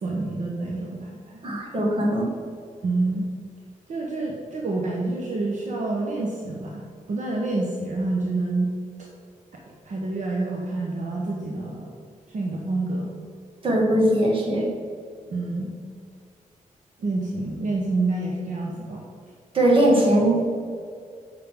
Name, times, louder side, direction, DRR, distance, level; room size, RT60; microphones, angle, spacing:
voice 1, 0.0-1.4 2.8-3.3 3.9-8.7 9.5-11.9 12.3-13.1 15.3-15.7 17.0-19.0, right 2 dB, 65° right, -2 dB, 1.0 m, -28 dB
voice 2, 1.4-2.3 13.6-14.7 19.5-20.5, right 1 dB, 40° right, -2 dB, 1.7 m, -20 dB
8.7 x 6.6 x 3.6 m, 2.2 s
wide cardioid pair, 160°, 14 cm